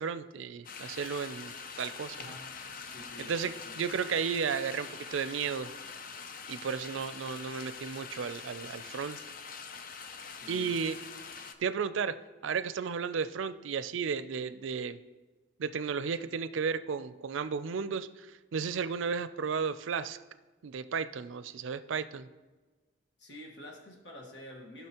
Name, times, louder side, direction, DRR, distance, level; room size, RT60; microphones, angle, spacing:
voice 1, 0.0-1.5 1.8-2.4 3.2-5.7 6.5-9.2 10.5-11.0 11.6-12.2 12.4-15.0 15.6-20.2 20.6-22.3, right 6 dB, 90° right, 13 dB, 0.4 m, -34 dB
sound 1, 0.6-11.5, left 5 dB, 45° left, 0.5 m, -44 dB
voice 2, 2.1-3.8 10.2-10.8 23.2-24.9, left 1 dB, 65° left, 0 dB, 1.5 m, -49 dB
15.5 x 5.9 x 2.9 m, 1.3 s
head